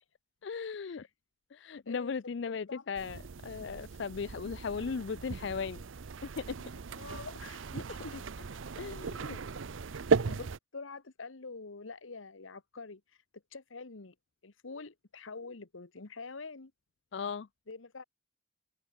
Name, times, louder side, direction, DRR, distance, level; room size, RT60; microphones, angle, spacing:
voice 1, 0.4-1.1 1.5-5.8 6.2-6.6 8.8-9.4 17.1-17.5, left 5 dB, 60° left, 0.4 m, -37 dB
sound 1, 3.0-10.6, right 5 dB, 80° right, 0.6 m, -36 dB
voice 2, 6.9-8.2 8.5-8.6 10.3-13.0 13.5-14.1 14.4-16.7 17.7-18.0, left 4 dB, 85° left, 1.2 m, -46 dB
open air
head